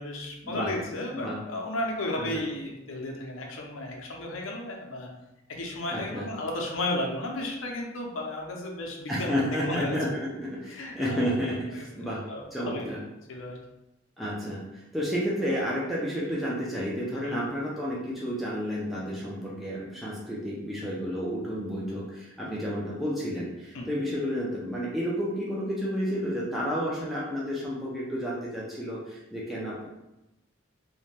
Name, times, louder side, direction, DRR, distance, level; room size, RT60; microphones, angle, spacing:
voice 1, 0.0-5.1 5.5-10.0 10.7-11.3 11.7-12.9 13.3-13.6 17.2-17.5 23.7-23.9, left 1 dB, 90° left, 0 dB, 0.5 m, -34 dB
voice 2, 5.9-6.3 9.1-12.2 12.5-13.0 14.2-29.9, equal, ahead, -7 dB, 0.4 m, -31 dB
2.6 x 2.1 x 3.1 m, 0.93 s
head